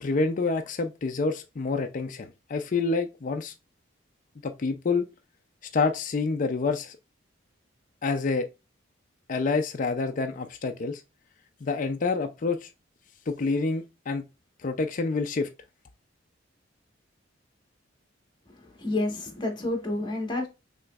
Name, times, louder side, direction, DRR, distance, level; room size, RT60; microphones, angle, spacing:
voice 1, 0.0-3.5 4.4-5.1 5.7-7.0 8.0-8.5 9.3-11.0 11.6-12.7 13.3-14.2 14.6-15.5, left 4 dB, 40° left, 0.4 m, -27 dB
voice 2, 18.5-20.5, left 2 dB, 25° left, 1.3 m, -30 dB
5.9 x 3.0 x 2.3 m
head